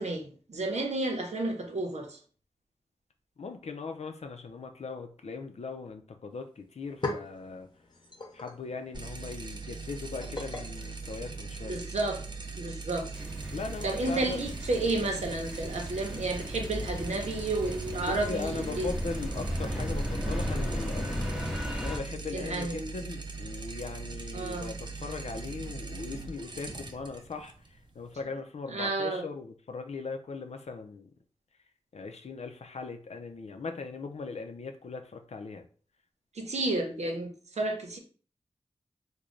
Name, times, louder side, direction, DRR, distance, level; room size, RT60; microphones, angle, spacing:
voice 1, 0.0-2.1 11.6-12.2 12.5-13.1 13.8-18.9 22.3-22.9 24.3-24.8 28.7-29.2 36.4-38.0, right 2 dB, 80° right, 2 dB, 0.8 m, -31 dB
voice 2, 3.4-7.7 8.3-11.8 13.5-14.4 18.0-21.3 21.8-27.5 28.0-31.1 31.9-35.7, left 4 dB, 75° left, 6 dB, 0.5 m, -39 dB
sound 1, 6.3-6.4 6.7-11.9, left 2 dB, 40° left, 0.8 m, -41 dB
sound 2, 8.9-28.2, right 4 dB, 40° right, 0.5 m, -41 dB
sound 3, 13.1-22.0, equal, 5° right, 0.7 m, -35 dB
3.1 x 2.2 x 3.8 m, 0.42 s
wide cardioid pair, 60°, 11 cm